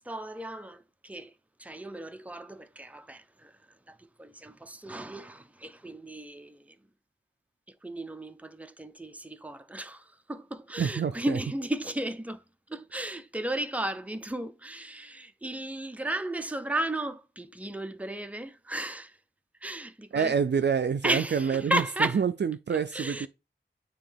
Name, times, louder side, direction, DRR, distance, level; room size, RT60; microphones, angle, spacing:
voice 1, 0.0-1.3 1.6-3.5 3.9-6.7 7.8-12.4 12.7-19.1 19.6-20.3 21.0-22.2 22.9-23.3, right 1 dB, 5° right, 0.6 m, -34 dB
voice 2, 10.8-11.4 20.1-23.3, right 6 dB, 60° right, 0.4 m, -27 dB
9.1 x 3.0 x 3.4 m
wide cardioid pair, 70°, 20 cm